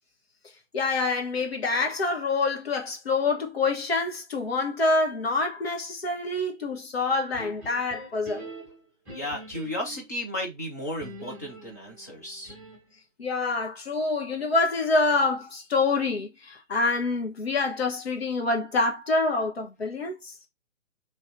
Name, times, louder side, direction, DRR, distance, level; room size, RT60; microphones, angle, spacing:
voice 1, 0.7-8.5 13.2-20.3, left 3 dB, 50° left, 1.2 m, -26 dB
sound 1, 7.3-10.1 11.0-13.0, right 2 dB, 5° right, 0.9 m, -44 dB
voice 2, 9.1-12.5, left 1 dB, 15° left, 0.5 m, -34 dB
3.2 x 2.7 x 3.7 m
figure-of-eight pair, 140°, 38 cm